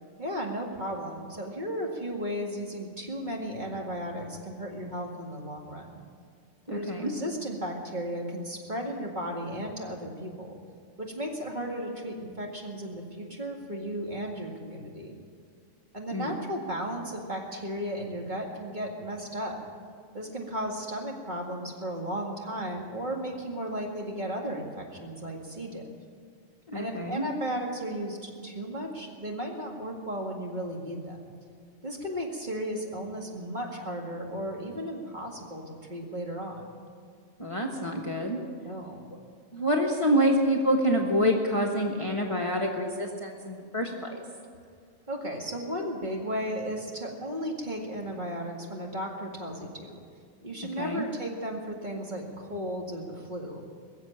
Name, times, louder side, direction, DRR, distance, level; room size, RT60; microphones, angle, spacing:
voice 1, 0.2-6.0 6.7-10.6 11.0-15.2 15.9-19.6 20.1-25.8 26.7-31.3 31.8-35.6 35.9-36.8 38.6-39.0 45.1-50.0 50.4-53.6, equal, 35° right, -1 dB, 2.2 m, -35 dB
voice 2, 6.7-7.1 16.1-16.4 26.7-27.2 37.4-38.4 39.5-44.2 50.8-51.0, equal, 25° left, 0 dB, 1.3 m, -27 dB
21.5 x 7.5 x 8.8 m, 2.2 s
omnidirectional pair, 1.4 m